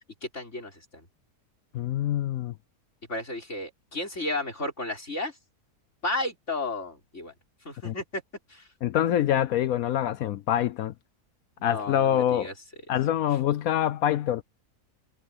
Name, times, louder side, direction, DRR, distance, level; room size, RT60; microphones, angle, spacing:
voice 1, 0.2-1.1 3.1-5.4 6.0-7.3 7.6-8.2 8.5-8.7 11.6-12.5, left 2 dB, 45° left, 6.2 m, -33 dB
voice 2, 1.7-2.5 7.8-7.9 8.8-10.9 11.6-12.5 12.9-14.4, left 11 dB, 70° left, 1.0 m, -25 dB
omnidirectional pair, 1.7 m